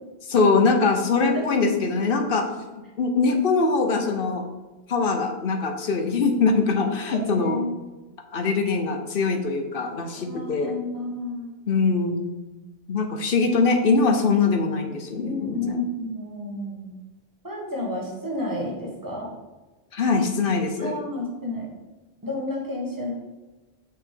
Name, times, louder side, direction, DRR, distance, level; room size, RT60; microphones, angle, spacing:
voice 1, 0.2-2.5 3.0-4.4 4.9-7.6 8.3-10.7 11.7-12.3 12.9-15.8 19.9-21.0, left 4 dB, 60° left, 5 dB, 0.8 m, -22 dB
voice 2, 7.1-7.8 10.1-11.5 13.4-13.5 15.2-17.0 17.4-19.3 20.8-21.7 22.2-23.1, left 1 dB, 20° right, -3 dB, 1.4 m, -31 dB
5.7 x 4.8 x 3.8 m, 1.1 s
omnidirectional pair, 1.1 m